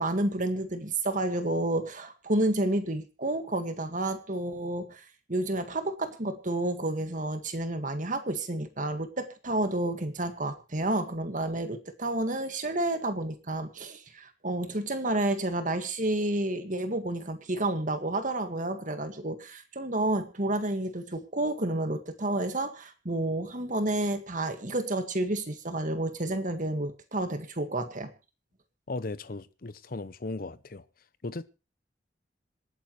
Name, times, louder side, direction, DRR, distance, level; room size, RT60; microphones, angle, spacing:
voice 1, 0.0-28.1, right 1 dB, 45° right, 1.8 m, -30 dB
voice 2, 28.9-30.8 31.2-31.5, left 2 dB, 50° left, 0.8 m, -36 dB
26.5 x 9.2 x 3.1 m
head